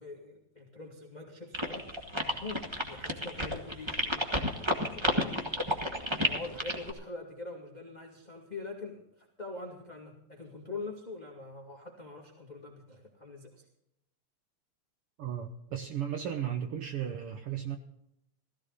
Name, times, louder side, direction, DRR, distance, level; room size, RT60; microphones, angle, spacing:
voice 1, 0.0-5.6 6.2-13.7, left 3 dB, 15° left, 0 dB, 1.8 m, -44 dB
sound 1, 1.5-6.9, equal, 15° right, 0.8 m, -31 dB
voice 2, 15.2-17.8, right 9 dB, 65° right, 6 dB, 1.6 m, -35 dB
16.5 x 15.0 x 4.0 m, 0.78 s
omnidirectional pair, 3.4 m